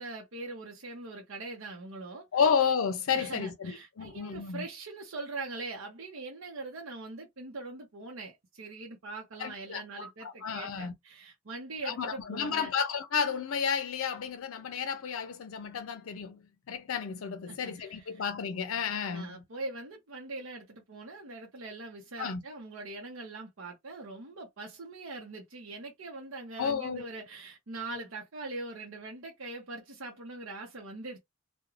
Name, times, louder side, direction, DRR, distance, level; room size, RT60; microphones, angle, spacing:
voice 1, 0.0-2.3 3.1-12.7 17.5-18.0 19.1-31.2, right 3 dB, 75° right, 0.7 m, -42 dB
voice 2, 2.3-4.7 9.4-10.9 11.8-19.4 22.2-22.4 26.6-27.1, left 6 dB, 80° left, 0.5 m, -32 dB
2.4 x 2.2 x 3.0 m
head